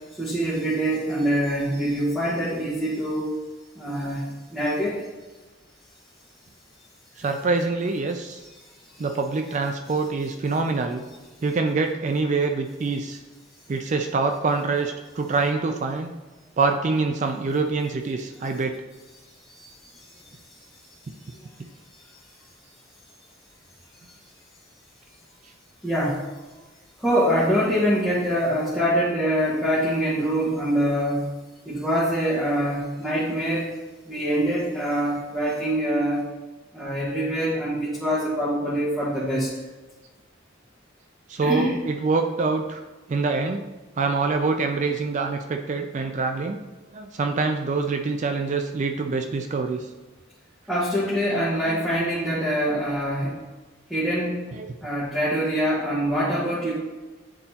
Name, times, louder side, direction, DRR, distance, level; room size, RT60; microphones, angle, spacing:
voice 1, 0.2-3.3 3.7-4.2 4.5-5.0 19.6-19.7 20.0-20.1 22.1-22.2 25.8-26.2 27.0-31.2 31.6-33.7 34.1-36.2 36.7-39.5 41.4-41.7 50.7-53.4 53.9-54.5 54.8-56.7, equal, ahead, -11 dB, 1.4 m, -24 dB
voice 2, 7.2-8.4 9.0-11.0 11.4-13.2 13.7-16.1 16.6-18.8 41.3-42.8 43.1-43.6 44.0-46.6 46.9-49.8 51.6-51.8 54.6-54.7, right 4 dB, 35° right, 5 dB, 0.3 m, -25 dB
8.8 x 4.0 x 2.8 m, 1.2 s
head